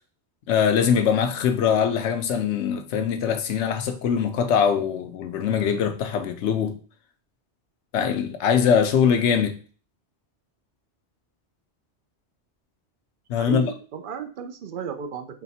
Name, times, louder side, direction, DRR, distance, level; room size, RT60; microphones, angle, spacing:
voice 1, 0.5-6.8 7.9-9.6 13.3-13.6, left 7 dB, 80° left, 0.9 m, -22 dB
voice 2, 13.4-15.4, right 6 dB, 60° right, 0.6 m, -33 dB
4.2 x 2.1 x 4.1 m
omnidirectional pair, 1.2 m